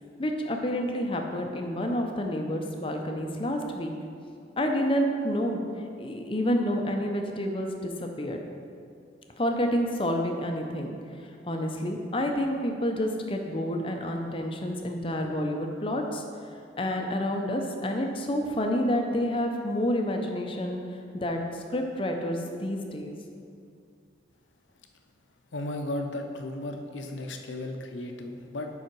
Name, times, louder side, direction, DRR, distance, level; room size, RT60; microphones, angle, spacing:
voice 1, 0.2-3.9 4.6-5.6 6.0-8.4 9.4-11.0 11.4-16.2 16.8-20.8 21.1-23.1, equal, 30° left, 2 dB, 0.6 m, -29 dB
voice 2, 25.5-28.7, left 1 dB, 80° left, 4 dB, 0.7 m, -35 dB
7.5 x 5.6 x 4.6 m, 2.4 s
head